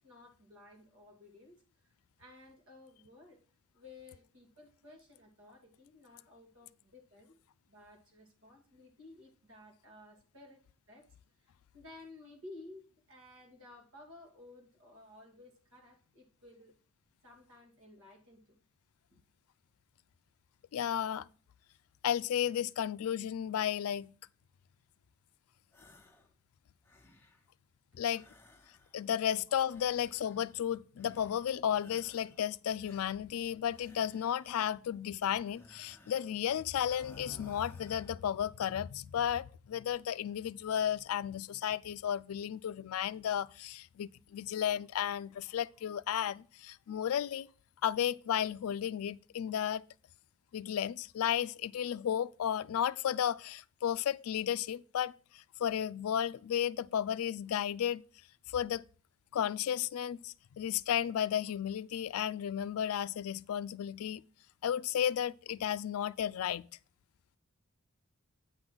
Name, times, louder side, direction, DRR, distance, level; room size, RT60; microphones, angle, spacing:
voice 1, 0.0-1.6 2.2-3.4 3.7-7.3 7.7-10.6 10.9-11.1 11.4-16.8 17.2-18.6 19.1-19.2, left 2 dB, 70° right, 2.3 m, -55 dB
voice 2, 20.7-21.3 22.0-24.1 28.0-28.2 28.9-47.5 47.8-49.8 50.5-58.0 58.5-58.8 59.3-64.2 64.6-66.7, left 9 dB, 80° left, 0.3 m, -33 dB
sound 1, 25.7-26.3 26.6-27.5 28.1-29.2 29.6-30.7 31.0-31.5 31.8-32.4 32.8-34.7 35.4-36.4 36.7-38.2, left 2 dB, 10° left, 0.7 m, -60 dB
8.7 x 3.8 x 6.1 m
head